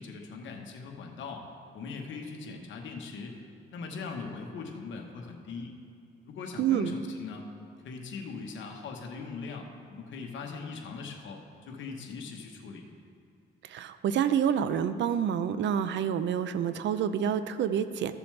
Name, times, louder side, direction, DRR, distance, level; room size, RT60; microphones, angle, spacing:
voice 1, 0.0-1.4 1.7-3.4 3.7-5.7 6.2-7.5 7.8-12.8, left 4 dB, 70° left, 2 dB, 1.2 m, -40 dB
voice 2, 6.6-6.9 13.6-18.2, right 8 dB, 65° right, 12 dB, 0.5 m, -28 dB
14.5 x 7.0 x 3.3 m, 2.4 s
cardioid pair, 90°, 20 cm